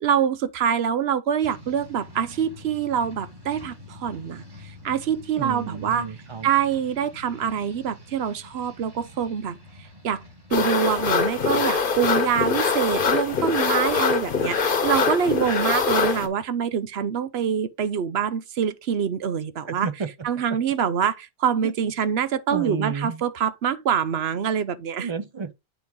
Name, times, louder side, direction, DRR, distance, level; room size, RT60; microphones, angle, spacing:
voice 1, 0.0-6.1 6.4-9.6 10.0-10.2 10.5-19.9 20.2-25.1, right 8 dB, 85° right, 1.0 m, -25 dB
sound 1, 1.4-10.7, left 1 dB, 25° right, 1.6 m, -45 dB
voice 2, 5.4-6.5 19.7-20.1 21.6-21.7 22.5-23.2 25.0-25.5, right 5 dB, 40° right, 0.4 m, -31 dB
sound 2, 10.5-16.3, left 5 dB, 60° left, 1.1 m, -23 dB
8.3 x 4.5 x 3.7 m
omnidirectional pair, 1.0 m